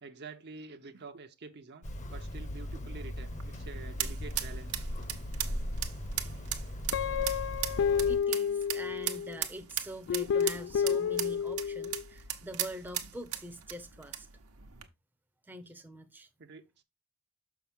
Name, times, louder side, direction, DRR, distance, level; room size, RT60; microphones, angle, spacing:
voice 1, 0.0-4.9 16.4-16.8, right 4 dB, 50° right, 0.7 m, -48 dB
Hammer, 1.8-8.2, equal, 35° left, 0.9 m, -38 dB
sound 1, 3.2-14.9, right 12 dB, 70° right, 1.0 m, -39 dB
Guitar, 6.9-9.4 10.1-12.0, left 7 dB, 60° left, 0.3 m, -30 dB
voice 2, 8.1-14.3 15.5-16.3, equal, 10° right, 0.7 m, -44 dB
6.7 x 5.8 x 3.5 m
head